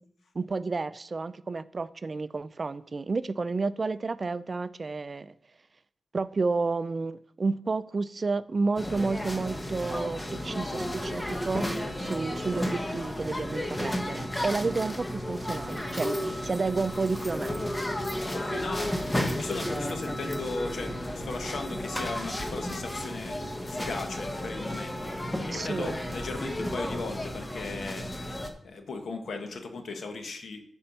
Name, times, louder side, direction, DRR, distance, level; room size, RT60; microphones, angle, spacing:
voice 1, 0.3-5.3 6.1-11.7 12.0-16.2 16.4-17.5 25.5-26.0, right 3 dB, 45° right, 0.3 m, -31 dB
sound 1, 8.8-28.5, left 1 dB, 15° left, 1.0 m, -33 dB
voice 2, 18.2-28.3 28.6-30.6, left 3 dB, 75° left, 1.1 m, -37 dB
8.6 x 4.4 x 5.3 m
cardioid pair, 70°, 0 cm